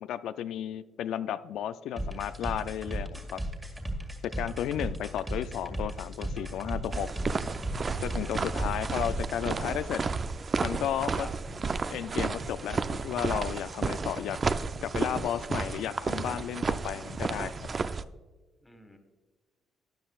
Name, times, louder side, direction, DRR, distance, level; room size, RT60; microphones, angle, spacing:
voice 1, 0.0-3.4 4.2-7.1 8.0-10.0 10.6-11.3 11.9-14.4 14.8-17.5, left 10 dB, 80° left, 12 dB, 0.3 m, -33 dB
sound 1, 2.0-9.5, right 1 dB, 20° right, 2.0 m, -35 dB
sound 2, 6.3-7.0 7.2-7.4 7.7-8.4 8.6-9.8 10.1-10.7 11.0-11.6 11.9-12.1 12.4-13.1 13.3-14.5 14.7-15.9 16.1-17.3 17.6-18.0, right 1 dB, 60° right, 2.9 m, -45 dB
sound 3, 6.9-18.0, right 4 dB, 35° right, 0.4 m, -32 dB
voice 2, 8.2-9.0 11.1-11.3 18.6-19.0, left 1 dB, 10° left, 6 dB, 1.7 m, -50 dB
13.0 x 10.0 x 2.4 m, 1.3 s
cardioid pair, 90°, 0 cm